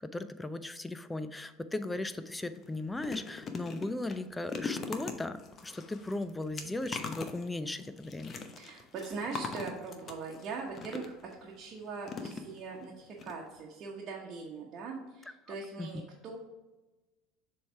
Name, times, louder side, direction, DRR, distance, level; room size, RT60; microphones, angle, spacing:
voice 1, 0.0-8.4 15.5-15.9, left 2 dB, 10° left, 12 dB, 0.5 m, -37 dB
sound 1, 2.0-2.2 2.6-11.3 12.0-12.8 13.2-13.3 13.6-13.7, left 4 dB, 40° left, 0.8 m, -42 dB
voice 2, 8.6-16.4, right 4 dB, 50° right, -3 dB, 1.1 m, -41 dB
6.9 x 3.3 x 4.6 m, 1.1 s
hypercardioid pair, 80°, 0 cm